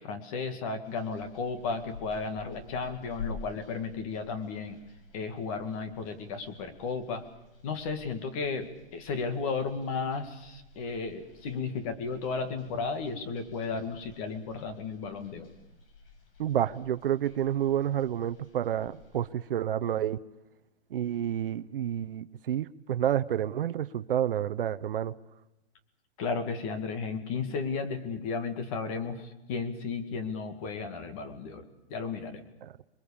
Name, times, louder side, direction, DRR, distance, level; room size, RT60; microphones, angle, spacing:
voice 1, 0.0-4.8 5.1-7.3 7.6-15.5 26.2-31.6 31.9-32.4, left 4 dB, 30° left, 7 dB, 2.1 m, -34 dB
sound 1, 0.8-19.3, left 4 dB, 55° left, 6.0 m, -50 dB
voice 2, 16.4-20.2 20.9-25.1 32.6-32.7, right 10 dB, 55° right, 12 dB, 0.8 m, -29 dB
27.0 x 22.0 x 7.1 m, 0.92 s
hypercardioid pair, 165°, 34 cm